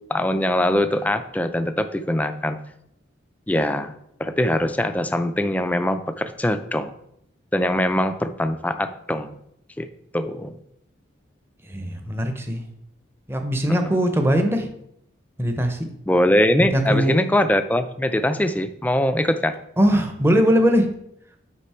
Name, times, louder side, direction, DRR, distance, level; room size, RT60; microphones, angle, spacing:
voice 1, 0.1-2.6 3.5-3.9 4.2-6.9 7.5-9.4 9.8-9.9 10.1-10.5 13.8-13.9 16.1-19.6, left 1 dB, 10° left, 9 dB, 0.4 m, -22 dB
voice 2, 11.7-12.6 13.3-14.7 15.4-15.9 16.6-17.1 19.8-20.9, equal, 10° right, 6 dB, 0.8 m, -20 dB
8.3 x 5.2 x 4.3 m, 0.75 s
head